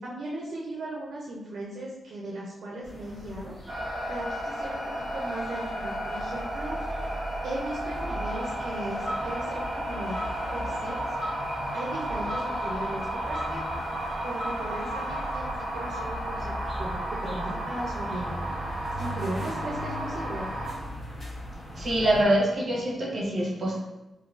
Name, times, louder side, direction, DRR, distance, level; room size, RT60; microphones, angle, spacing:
voice 1, 0.0-3.6 4.1-6.8 7.4-10.2 10.5-11.0 11.7-13.7 14.2-18.5 19.0-20.5, right 1 dB, 70° right, -4 dB, 0.5 m, -37 dB
sound 1, 2.8-22.2, equal, 25° left, 1.0 m, -39 dB
sound 2, 3.7-20.7, right 1 dB, 15° right, 0.8 m, -33 dB
sound 3, 8.2-15.3, equal, 65° left, 0.8 m, -40 dB
voice 2, 21.7-23.7, right 1 dB, 45° right, -3 dB, 0.9 m, -25 dB
3.8 x 2.6 x 2.4 m, 1.0 s
wide cardioid pair, 160°, 0 cm